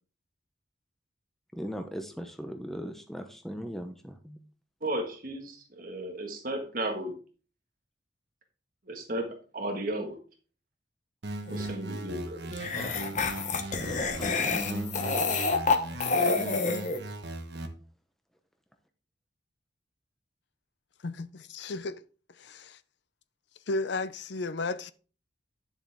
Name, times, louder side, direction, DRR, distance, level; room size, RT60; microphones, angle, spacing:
voice 1, 1.5-4.4 14.1-15.0, equal, ahead, 0.7 m, -38 dB
voice 2, 4.8-7.1 8.9-10.2 11.5-12.5, right 1 dB, 45° right, 1.6 m, -34 dB
sound 1, 11.2-14.2 14.6-17.7, right 2 dB, 60° right, 1.2 m, -38 dB
sound 2, 11.5-11.7 12.5-17.0, left 4 dB, 40° left, 1.0 m, -28 dB
voice 3, 21.0-22.0 22.4-22.8 23.7-24.9, left 3 dB, 65° left, 0.5 m, -33 dB
10.0 x 7.3 x 3.5 m
head